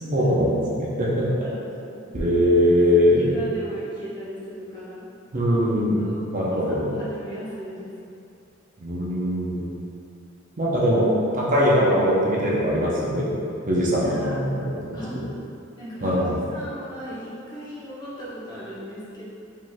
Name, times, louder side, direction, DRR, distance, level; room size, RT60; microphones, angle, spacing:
voice 1, 0.0-1.3 2.1-3.3 5.3-6.9 8.8-9.7 10.6-11.1 11.3-13.3 13.7-15.2 16.0-16.4, equal, 40° right, -6 dB, 0.6 m, -21 dB
voice 2, 1.3-5.1 6.0-6.2 6.5-7.9 14.0-14.4 14.9-15.2 15.8-16.2 16.5-19.2, equal, 20° left, -10 dB, 1.0 m, -38 dB
5.0 x 3.7 x 2.3 m, 2.7 s
head